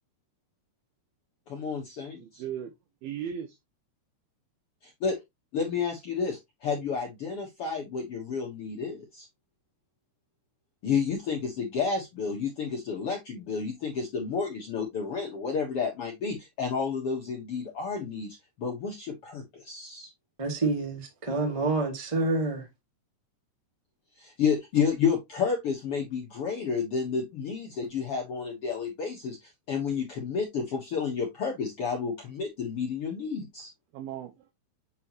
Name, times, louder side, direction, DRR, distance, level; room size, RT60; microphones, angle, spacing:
voice 1, 1.5-2.4 5.0-5.2 5.5-9.3 10.8-20.1 24.2-33.7, left 6 dB, 65° left, 1.5 m, -31 dB
voice 2, 2.1-2.7 3.0-3.6 33.9-34.5, right 9 dB, 75° right, 2.7 m, -37 dB
voice 3, 20.4-22.7, right 2 dB, 25° right, 0.7 m, -28 dB
8.4 x 4.5 x 3.0 m
omnidirectional pair, 4.5 m